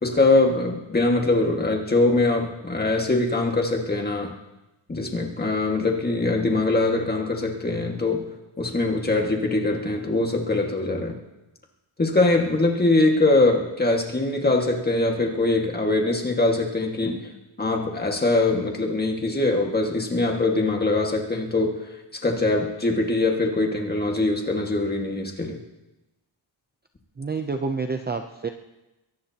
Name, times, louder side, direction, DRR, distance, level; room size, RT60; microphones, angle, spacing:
voice 1, 0.0-4.3 4.9-8.3 8.6-11.2 12.0-17.3 17.6-21.8 22.1-25.6, left 2 dB, 20° left, 1 dB, 1.9 m, -22 dB
voice 2, 27.2-28.5, right 4 dB, 20° right, 5 dB, 0.6 m, -28 dB
22.5 x 18.0 x 2.9 m, 0.98 s
wide cardioid pair, 155°, 46 cm